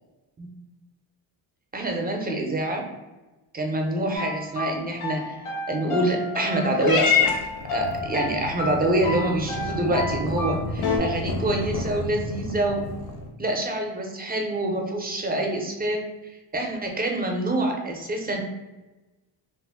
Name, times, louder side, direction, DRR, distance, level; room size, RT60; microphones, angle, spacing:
voice 1, 1.7-2.9 3.5-5.4 5.7-7.3 7.7-12.8 13.4-18.4, right 1 dB, 20° right, 2 dB, 0.4 m, -26 dB
sound 1, 4.1-11.0, left 3 dB, 85° left, 0.8 m, -31 dB
Purr / Meow, 6.8-13.3, left 5 dB, 50° left, 0.5 m, -29 dB
2.5 x 2.0 x 3.5 m, 1.1 s
cardioid pair, 105°, 48 cm